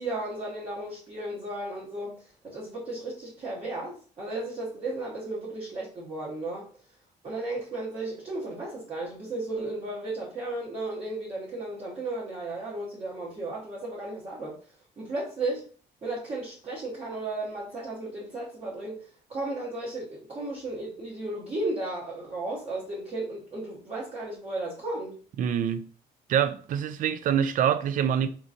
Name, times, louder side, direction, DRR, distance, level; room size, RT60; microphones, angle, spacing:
voice 1, 0.0-6.7 7.2-14.6 15.0-15.7 16.0-25.2, right 2 dB, 35° right, 1.1 m, -34 dB
voice 2, 25.4-25.8 26.3-28.3, right 9 dB, 50° right, 0.4 m, -25 dB
3.7 x 3.0 x 2.5 m
cardioid pair, 110°, 17 cm